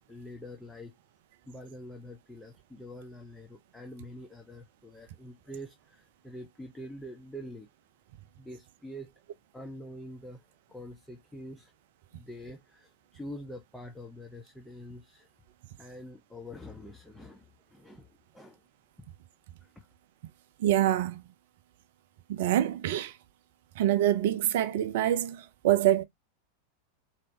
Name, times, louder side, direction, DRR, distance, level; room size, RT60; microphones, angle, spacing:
voice 1, 0.1-1.0 1.5-7.7 8.4-9.1 9.5-10.4 10.7-11.7 12.1-15.3 15.8-18.6 19.0-19.1 19.6-19.9, equal, 5° left, 0.8 m, -45 dB
voice 2, 20.6-21.2 22.3-23.2 23.8-26.0, right 12 dB, 55° right, 0.5 m, -25 dB
4.3 x 3.1 x 2.6 m
figure-of-eight pair, 90°, 0 cm